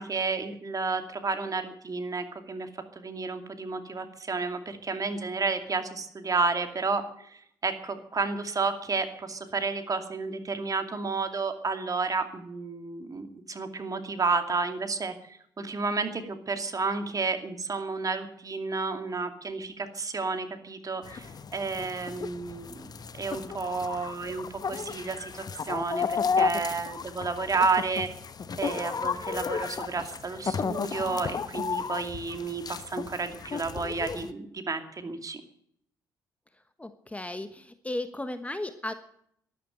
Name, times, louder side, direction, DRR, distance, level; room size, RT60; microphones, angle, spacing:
voice 1, 0.0-2.7 3.0-22.9 23.2-28.1 28.6-35.4, right 4 dB, 35° right, 7 dB, 2.5 m, -31 dB
sound 1, 21.0-34.3, left 5 dB, 40° left, 1.0 m, -33 dB
voice 2, 36.8-38.9, left 1 dB, 15° left, 10 dB, 1.3 m, -35 dB
12.5 x 11.5 x 9.0 m, 0.69 s
hypercardioid pair, 45°, 10 cm